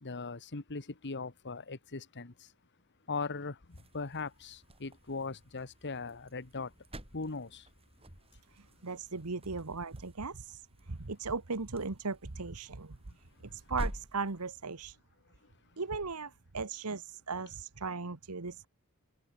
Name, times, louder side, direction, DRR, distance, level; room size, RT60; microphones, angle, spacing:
voice 1, 0.0-2.3 3.1-3.5 3.9-6.7 7.1-7.6, left 4 dB, 55° left, 1.4 m, -39 dB
sound 1, 3.7-14.8, equal, 25° right, 5.4 m, -48 dB
voice 2, 8.5-10.6 10.9-13.0 13.5-15.0 15.8-18.7, right 4 dB, 90° right, 1.4 m, -37 dB
head